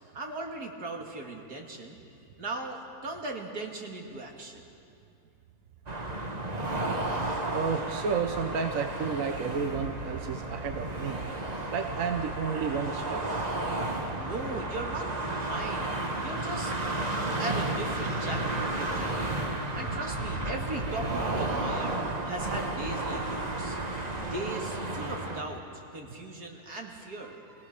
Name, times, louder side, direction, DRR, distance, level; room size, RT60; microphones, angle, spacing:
voice 1, 0.1-2.0 2.4-4.7 14.2-15.9 16.2-16.7 17.4-19.3 19.7-22.0 22.2-23.8 24.2-25.6 25.9-27.4, right 2 dB, 80° right, 1 dB, 2.7 m, -38 dB
sound 1, 5.9-25.4, right 2 dB, 25° right, 1.4 m, -32 dB
voice 2, 7.5-11.2 11.7-13.4, right 5 dB, 60° right, 5 dB, 1.3 m, -31 dB
26.5 x 17.0 x 6.6 m, 2.5 s
omnidirectional pair, 1.6 m